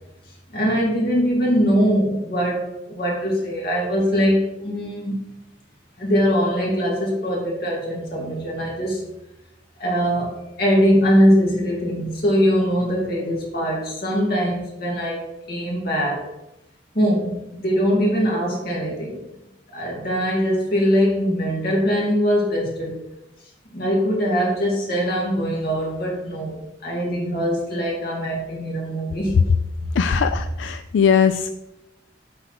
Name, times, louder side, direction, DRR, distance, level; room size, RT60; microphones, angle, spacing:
voice 1, 0.5-5.3 6.0-9.0 9.8-16.3 16.9-19.2 19.7-23.0 23.7-26.5 26.8-29.4 29.8-29.9, equal, 55° left, -2 dB, 2.5 m, -22 dB
voice 2, 30.0-31.5, left 7 dB, 85° left, 10 dB, 0.3 m, -20 dB
7.7 x 3.5 x 5.9 m, 0.91 s
head